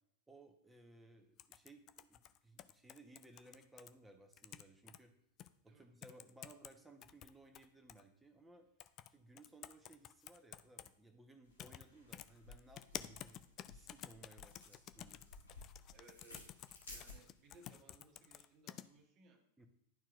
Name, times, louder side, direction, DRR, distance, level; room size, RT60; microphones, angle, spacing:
voice 1, 0.3-5.1 5.6-8.7 9.1-13.4 13.7-15.2 19.6-19.7, right 2 dB, 5° right, 3 dB, 1.2 m, -61 dB
sound 1, 1.4-3.9 4.3-5.0 5.4-5.5 6.0-6.7 7.0-8.0 8.8-9.1 9.4-10.9 11.6-11.8 12.1-18.8, left 11 dB, 35° left, 0.3 m, -51 dB
sound 2, 11.4-17.6, left 2 dB, 80° left, 2.8 m, -58 dB
voice 2, 15.9-19.4, right 3 dB, 35° right, 3 dB, 1.5 m, -64 dB
12.0 x 4.4 x 2.6 m, 0.79 s
figure-of-eight pair, 90°, 0 cm